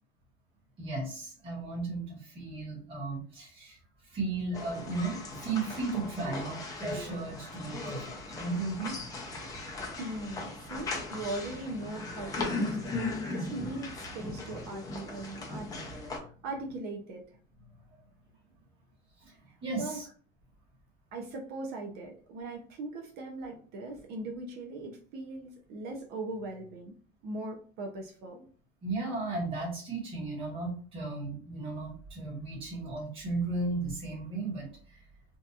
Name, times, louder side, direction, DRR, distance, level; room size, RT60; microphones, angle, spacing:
voice 1, 0.8-3.8 4.0-9.0 17.9-18.0 19.2-20.1 28.8-35.0, right 3 dB, 25° right, -3 dB, 1.3 m, -35 dB
sound 1, 4.5-16.2, left 2 dB, 15° left, 0.5 m, -38 dB
voice 2, 10.0-17.2 19.8-20.0 21.1-27.0 27.2-28.5, right 2 dB, 50° right, 2 dB, 0.6 m, -40 dB
2.8 x 2.3 x 2.3 m, 0.43 s
cardioid pair, 150°, 21 cm